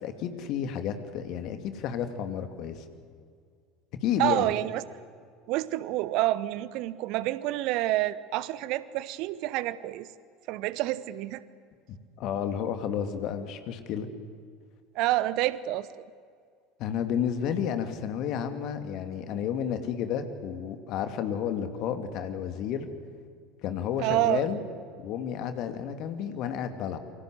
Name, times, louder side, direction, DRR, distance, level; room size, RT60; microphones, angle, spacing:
voice 1, 0.0-2.8 4.0-4.5 11.9-14.1 16.8-22.9 23.6-24.6 25.0-27.0, left 8 dB, 50° left, 7 dB, 2.5 m, -31 dB
voice 2, 4.2-4.8 5.5-10.1 10.5-11.4 14.9-15.9 24.0-24.4, right 16 dB, 55° right, 17 dB, 1.0 m, -28 dB
28.0 x 24.0 x 8.0 m, 2.1 s
figure-of-eight pair, 70°, 0 cm